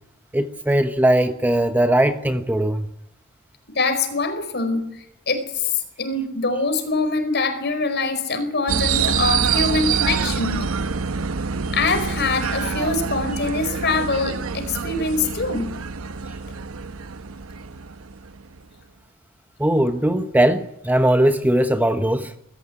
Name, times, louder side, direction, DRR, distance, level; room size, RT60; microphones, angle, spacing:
voice 1, 0.3-2.9 19.6-22.3, right 1 dB, 10° right, 8 dB, 1.0 m, -19 dB
voice 2, 3.7-10.7 11.7-15.7, left 3 dB, 50° left, 8 dB, 4.6 m, -24 dB
sound 1, 8.7-18.6, right 6 dB, 80° right, 0.9 m, -26 dB
23.0 x 14.5 x 9.8 m, 0.77 s
head